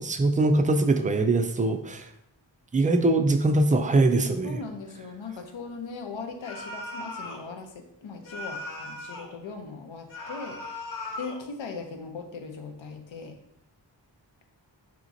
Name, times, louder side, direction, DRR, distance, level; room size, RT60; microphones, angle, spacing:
voice 1, 0.0-2.0 2.7-4.6, right 2 dB, 20° right, 7 dB, 0.3 m, -22 dB
voice 2, 4.4-10.6 11.2-13.4, left 4 dB, 80° left, 5 dB, 0.7 m, -39 dB
sound 1, 6.4-7.5 8.2-9.4 10.1-11.4, left 2 dB, 45° left, 0.8 m, -38 dB
4.8 x 2.9 x 2.6 m, 0.77 s
wide cardioid pair, 55°, 45 cm